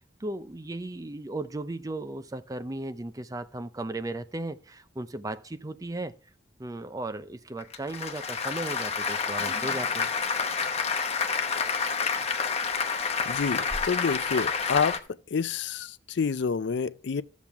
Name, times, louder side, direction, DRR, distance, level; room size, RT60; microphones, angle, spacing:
voice 1, 0.0-6.1 6.6-10.1, right 2 dB, 20° right, 0.5 m, -36 dB
Applause, 7.6-15.0, left 5 dB, 35° left, 0.9 m, -29 dB
voice 2, 13.3-15.0 15.3-17.2, left 5 dB, 75° left, 0.4 m, -28 dB
13.5 x 7.3 x 3.5 m
head